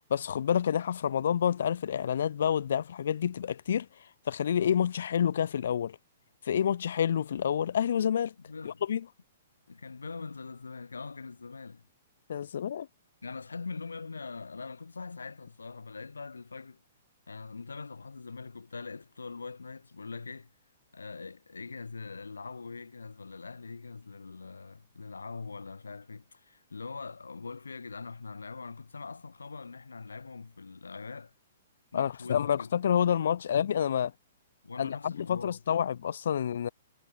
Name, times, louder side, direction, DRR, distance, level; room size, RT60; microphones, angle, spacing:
voice 1, 0.0-3.9 4.3-6.0 6.4-8.3 8.6-9.0 12.3-12.9 31.9-34.1 34.8-36.7, left 8 dB, 65° left, 0.7 m, -28 dB
voice 2, 8.4-8.8 9.7-11.9 13.2-16.8 17.3-20.5 20.9-31.3 31.9-32.7 34.6-35.6, left 4 dB, 85° left, 6.5 m, -42 dB
hypercardioid pair, 120°, 0 cm